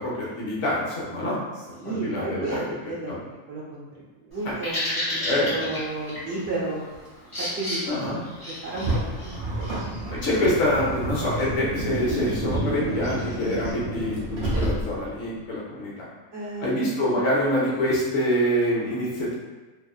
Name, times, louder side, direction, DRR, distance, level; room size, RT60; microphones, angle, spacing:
voice 1, 0.0-1.4 1.8-2.8 3.1-3.2 4.5-4.6 5.2-5.7 7.9-8.2 10.1-16.1 16.6-19.4, left 1 dB, 65° left, -5 dB, 1.0 m, -26 dB
voice 2, 1.7-3.8 4.2-6.8 7.4-7.8 8.5-9.9 16.3-16.8, right 2 dB, 55° right, -7 dB, 0.9 m, -33 dB
Bird vocalization bird call bird song, 4.3-13.7, equal, 30° left, 1.1 m, -35 dB
Car, 8.7-15.2, right 1 dB, 25° right, 0.5 m, -29 dB
2.7 x 2.4 x 2.3 m, 1.2 s
omnidirectional pair, 1.4 m